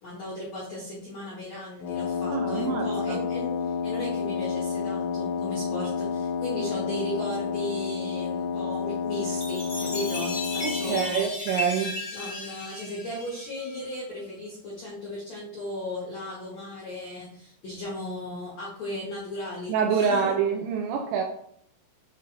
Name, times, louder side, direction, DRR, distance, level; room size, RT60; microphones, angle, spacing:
voice 1, 0.0-11.3 11.6-20.3, left 1 dB, 65° left, -6 dB, 1.7 m, -36 dB
Wind instrument woodwind instrument, 1.8-11.2, left 6 dB, 80° left, 2.7 m, -30 dB
voice 2, 2.3-3.2 10.6-12.0 19.7-21.2, right 6 dB, 85° right, 3 dB, 2.6 m, -26 dB
Chime, 9.3-13.9, left 2 dB, 35° left, 1.2 m, -35 dB
8.5 x 3.2 x 4.0 m, 0.68 s
omnidirectional pair, 5.7 m